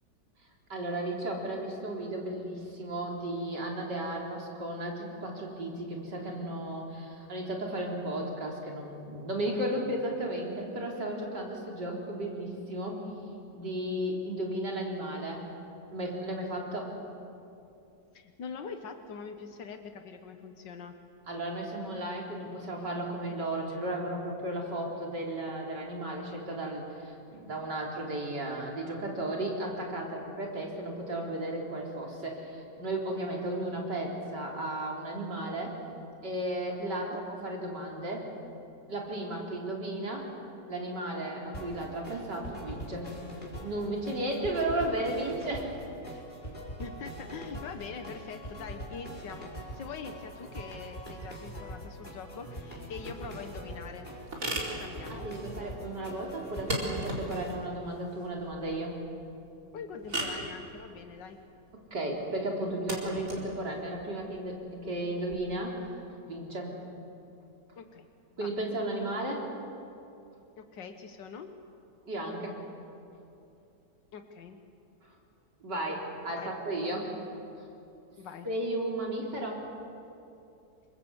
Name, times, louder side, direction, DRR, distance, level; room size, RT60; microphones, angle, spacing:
voice 1, 0.7-13.0 13.5-15.5 15.9-16.9 21.3-35.8 36.2-38.3 38.9-40.3 40.7-43.1 43.6-45.7 55.1-59.0 61.7-65.9 66.3-66.7 68.4-69.5 72.1-72.6 75.6-77.1 77.6-77.7 78.4-79.6, right 1 dB, 75° right, -1 dB, 4.7 m, -34 dB
voice 2, 18.1-20.9 36.8-37.2 46.8-54.1 54.5-55.3 59.7-61.4 67.8-68.1 68.4-68.5 70.6-71.5 74.1-74.6 76.4-76.5 78.2-78.5, left 5 dB, 85° left, 6 dB, 2.0 m, -43 dB
sound 1, 41.5-57.5, equal, 25° left, 5.0 m, -43 dB
sound 2, 53.0-65.3, right 1 dB, 50° right, 4.7 m, -39 dB
28.0 x 23.5 x 8.2 m, 2.7 s
omnidirectional pair, 1.9 m